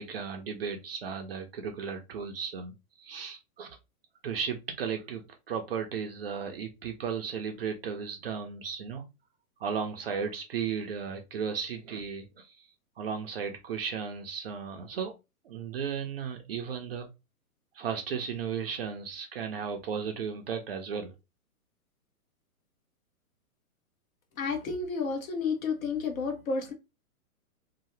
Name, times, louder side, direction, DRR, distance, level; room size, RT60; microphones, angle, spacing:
voice 1, 0.0-3.8 4.2-9.0 9.6-12.5 13.0-15.1 15.4-17.1 17.7-21.1, right 6 dB, 40° right, 0.5 m, -35 dB
voice 2, 24.4-26.7, left 4 dB, 60° left, 1.0 m, -31 dB
2.7 x 2.1 x 3.1 m
hypercardioid pair, 150°, 45 cm